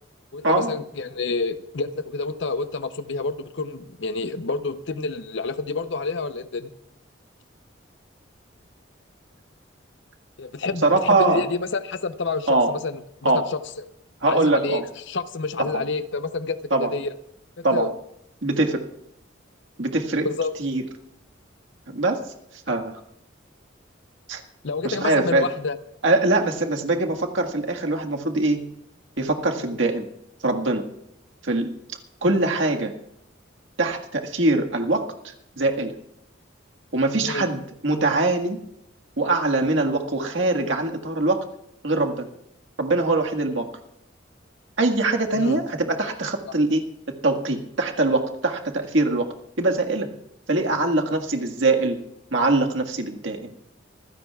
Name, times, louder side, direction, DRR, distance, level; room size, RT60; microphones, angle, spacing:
voice 1, 0.3-6.7 10.4-13.6 14.3-17.1 17.6-17.9 20.2-20.5 24.6-25.8 37.2-37.5 45.3-45.6 46.5-46.6, left 3 dB, 65° left, 11 dB, 0.8 m, -28 dB
voice 2, 10.8-11.5 12.5-12.7 13.2-13.5 14.2-14.8 15.7-15.8 16.7-16.9 17.6-17.9 18.4-18.8 19.8-20.3 20.6-20.8 21.9-22.2 22.7-22.9 24.3-24.4 24.8-25.5 26.0-28.6 29.2-30.1 30.4-30.9 31.4-31.7 32.2-32.9 33.8-35.9 36.9-38.6 39.2-41.4 41.8-42.3 42.8-43.7 44.8-50.1 50.5-52.0 52.3-53.5, right 2 dB, 70° right, 3 dB, 1.8 m, -22 dB
25.0 x 16.0 x 2.4 m, 0.79 s
head